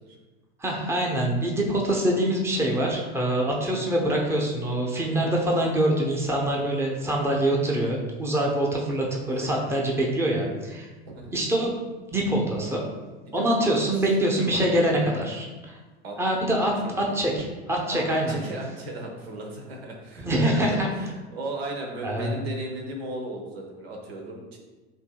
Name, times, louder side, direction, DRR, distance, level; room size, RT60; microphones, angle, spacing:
voice 1, 0.6-10.9 11.3-11.7 12.1-12.8 13.3-15.8 16.2-18.4 20.2-20.9 22.0-22.3, right 1 dB, 10° right, -1 dB, 0.8 m, -24 dB
voice 2, 9.3-9.6 11.1-11.4 13.3-13.7 14.4-15.0 16.0-16.2 16.8-17.2 17.9-24.6, right 1 dB, 70° right, 1 dB, 1.0 m, -36 dB
8.1 x 2.7 x 2.3 m, 1.2 s
hypercardioid pair, 80°, 32 cm